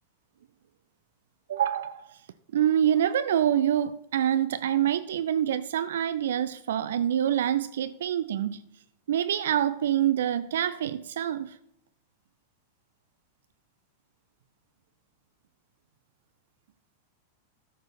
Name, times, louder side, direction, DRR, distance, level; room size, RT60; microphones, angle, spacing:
voice 1, 1.5-2.2 2.5-8.6 9.1-11.6, right 10 dB, 60° right, 0.4 m, -26 dB
13.5 x 6.1 x 4.2 m
figure-of-eight pair, 90°, 0 cm